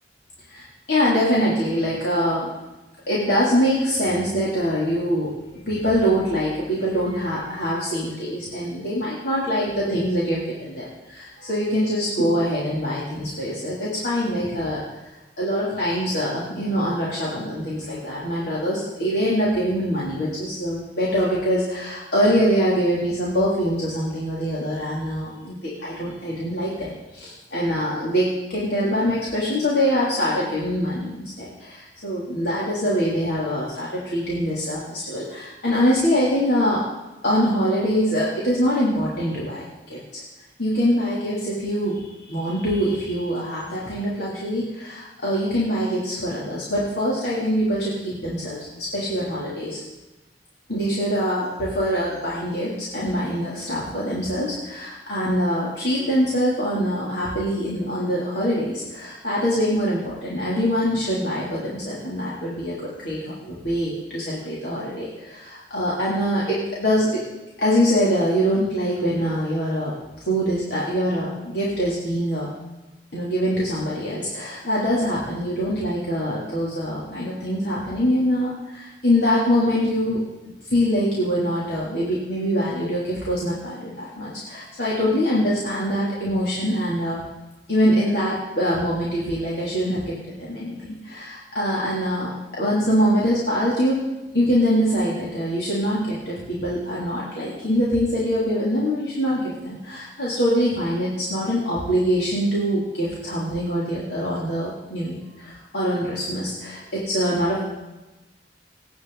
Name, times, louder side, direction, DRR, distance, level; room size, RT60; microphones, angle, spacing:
voice 1, 0.5-2.5 3.1-5.3 5.6-14.8 15.4-36.8 37.2-40.2 40.6-49.8 50.7-67.2 67.6-69.9 70.3-72.5 73.1-87.2 87.7-94.0 94.3-107.6, equal, 70° left, -7 dB, 3.3 m, -24 dB
26.5 x 9.4 x 4.1 m, 1.1 s
head